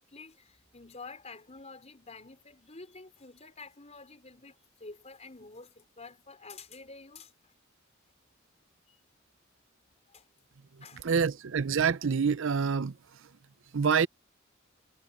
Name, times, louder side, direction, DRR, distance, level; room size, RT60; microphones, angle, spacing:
voice 1, 0.1-7.5 8.9-9.0 10.1-10.3 10.8-11.1, left 3 dB, 35° left, 4.7 m, -49 dB
voice 2, 11.0-13.0 13.7-14.1, right 6 dB, 65° right, 0.6 m, -26 dB
head